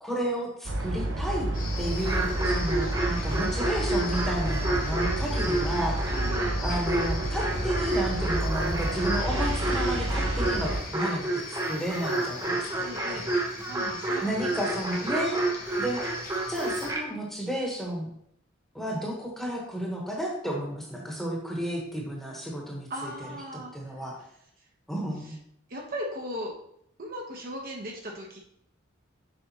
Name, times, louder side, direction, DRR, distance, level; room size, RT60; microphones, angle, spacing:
voice 1, 0.0-1.5 1.8-6.0 6.6-13.1 14.2-18.1 18.7-24.2 24.9-25.3, equal, ahead, -2 dB, 1.3 m, -32 dB
sound 1, 0.6-10.8, right 1 dB, 70° right, 1.2 m, -30 dB
sound 2, 1.5-16.9, left 4 dB, 45° left, 1.1 m, -42 dB
sound 3, 2.0-17.0, right 2 dB, 15° right, 0.8 m, -30 dB
voice 2, 6.1-6.6 12.8-13.3 13.6-14.9 22.9-24.0 25.2-25.4 25.7-26.5 27.0-28.4, equal, 45° right, -1 dB, 1.1 m, -38 dB
7.0 x 5.1 x 3.0 m, 0.71 s
head